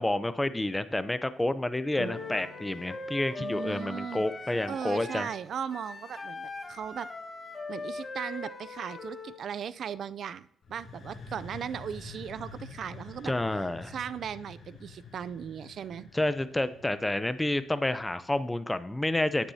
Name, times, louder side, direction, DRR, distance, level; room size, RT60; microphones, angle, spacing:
voice 1, 0.0-5.3 13.2-13.9 16.1-19.5, left 1 dB, 10° left, 13 dB, 0.6 m, -29 dB
Wind instrument woodwind instrument, 1.9-9.4, left 3 dB, 25° left, 1.4 m, -40 dB
sound 1, 2.0-9.3, right 5 dB, 80° right, 1.8 m, -52 dB
voice 2, 3.4-4.3 4.7-7.1 7.7-13.3 13.8-16.1, right 8 dB, 60° right, 17 dB, 0.4 m, -37 dB
sound 2, 10.6-18.3, left 4 dB, 45° left, 2.3 m, -48 dB
10.0 x 9.3 x 2.8 m, 0.72 s
cardioid pair, 90°, 0 cm